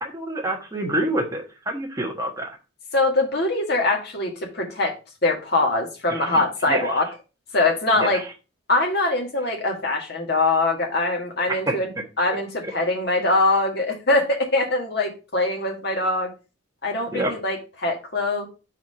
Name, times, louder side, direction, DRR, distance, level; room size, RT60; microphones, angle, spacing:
voice 1, 0.0-2.5 6.1-6.4 6.7-6.9 8.0-8.3 11.5-11.8 17.1-17.3, right 1 dB, 15° right, 0 dB, 1.3 m, -27 dB
voice 2, 2.9-4.9 5.2-7.1 7.5-8.2 8.7-11.9 12.2-16.3 16.8-18.5, left 2 dB, 50° left, 2 dB, 1.7 m, -23 dB
4.7 x 4.4 x 5.5 m, 0.31 s
head